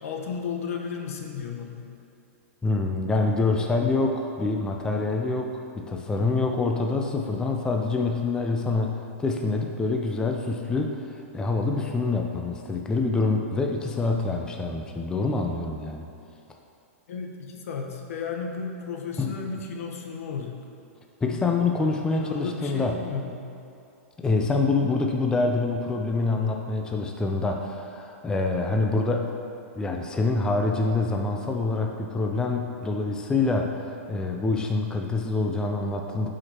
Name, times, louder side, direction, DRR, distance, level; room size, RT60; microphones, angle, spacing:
voice 1, 0.0-1.9 17.1-20.6 21.8-23.5, left 5 dB, 70° left, 2 dB, 1.0 m, -34 dB
voice 2, 2.6-16.1 19.2-19.3 21.2-23.0 24.2-29.3 29.7-36.3, left 3 dB, 10° left, 2 dB, 0.4 m, -26 dB
12.0 x 4.9 x 2.9 m, 2.6 s
hypercardioid pair, 135°, 8 cm